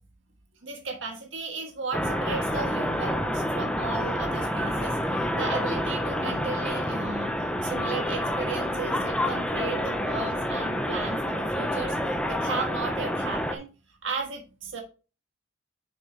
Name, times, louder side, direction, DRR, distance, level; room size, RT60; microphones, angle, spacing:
voice 1, 0.6-13.7 14.0-14.8, right 4 dB, 85° right, 2 dB, 1.5 m, -35 dB
sound 1, 1.9-13.6, equal, 5° left, 0.6 m, -28 dB
6.7 x 6.2 x 3.2 m, 0.34 s
head